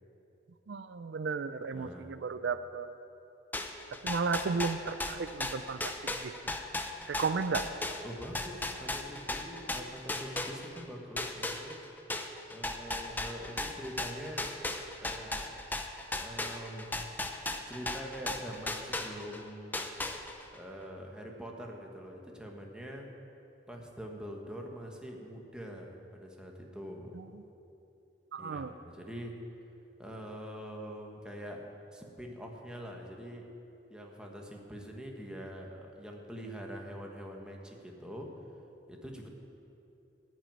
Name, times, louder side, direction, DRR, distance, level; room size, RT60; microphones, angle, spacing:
voice 1, 0.7-3.0 4.0-5.9 6.2-6.3 7.1-7.7 27.2-27.3 28.3-28.7, right 4 dB, 75° right, 11 dB, 0.4 m, -34 dB
voice 2, 1.7-2.2 8.0-11.8 12.5-14.5 15.0-15.4 16.2-17.0 17.7-19.9 20.5-23.1 23.7-27.2 28.4-29.4 30.0-31.6 31.9-33.5 33.9-38.3 38.9-39.3, equal, 5° right, 0 dB, 1.3 m, -44 dB
sound 1, 3.5-10.8 11.2-19.4 19.7-20.5, left 2 dB, 10° left, 0.6 m, -36 dB
13.5 x 6.2 x 8.8 m, 2.9 s
head